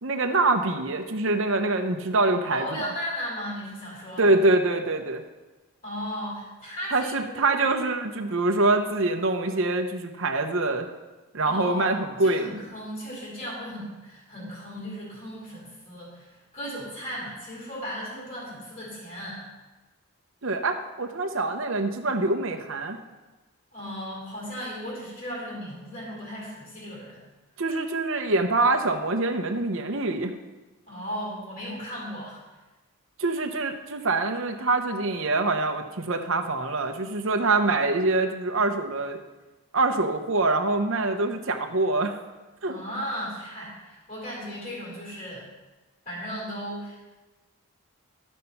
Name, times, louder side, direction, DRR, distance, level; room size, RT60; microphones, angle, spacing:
voice 1, 0.0-2.8 4.2-5.2 6.9-10.9 11.3-12.6 20.4-23.0 27.6-30.3 33.2-39.2 39.7-42.2 42.6-42.8, right 2 dB, 60° right, 5 dB, 0.8 m, -25 dB
voice 2, 2.5-4.2 5.8-7.3 11.4-19.4 23.7-27.2 30.9-32.4 42.7-45.5 46.0-47.1, equal, 35° left, -7 dB, 3.9 m, -36 dB
13.0 x 5.4 x 5.7 m, 1.2 s
head